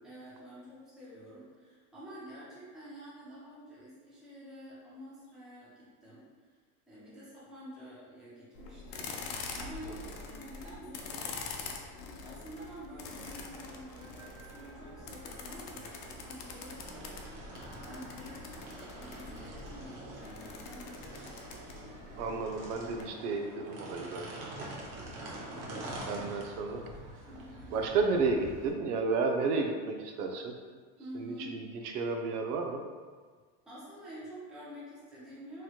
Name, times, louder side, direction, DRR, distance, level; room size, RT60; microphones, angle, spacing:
voice 1, 0.0-6.2 6.9-9.1 9.5-11.7 12.2-17.1 17.8-21.3 24.9-26.4 27.3-27.8 31.0-31.6 33.6-35.6, equal, ahead, -9 dB, 0.4 m, -49 dB
sound 1, 8.5-23.0, left 4 dB, 80° left, 0.6 m, -45 dB
sound 2, 13.0-28.7, right 1 dB, 50° right, 0.8 m, -46 dB
voice 2, 22.2-24.3 24.6-24.7 25.7-26.8 27.7-30.5 31.1-31.6 31.9-32.8, right 4 dB, 85° right, 3 dB, 0.6 m, -32 dB
3.0 x 2.9 x 2.3 m, 1.5 s
supercardioid pair, 145°, 46 cm